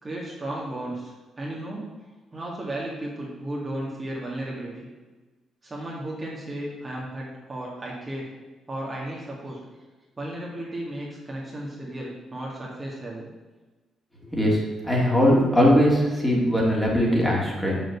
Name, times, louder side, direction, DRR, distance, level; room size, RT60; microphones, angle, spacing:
voice 1, 0.0-1.9 2.3-4.9 5.6-8.3 8.7-9.6 10.2-13.3, right 1 dB, 25° right, -4 dB, 2.3 m, -34 dB
voice 2, 14.3-17.8, equal, 5° left, -3 dB, 3.1 m, -20 dB
7.1 x 6.2 x 7.0 m, 1.2 s
cardioid pair, 90°, 0 cm